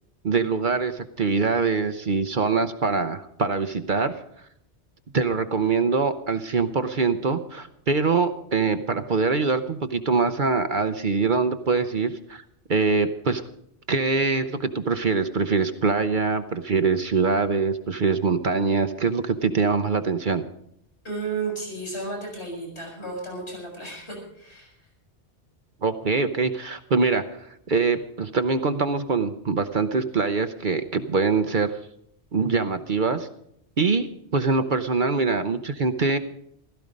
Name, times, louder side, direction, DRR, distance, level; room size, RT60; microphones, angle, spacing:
voice 1, 0.2-4.2 5.1-12.4 12.7-13.4 13.9-20.4 25.8-31.8 32.3-33.3 33.8-36.2, right 4 dB, 50° right, 9 dB, 0.8 m, -24 dB
voice 2, 21.0-24.7, right 3 dB, 70° left, 0 dB, 7.1 m, -33 dB
16.0 x 14.0 x 5.2 m, 0.73 s
omnidirectional pair, 1.2 m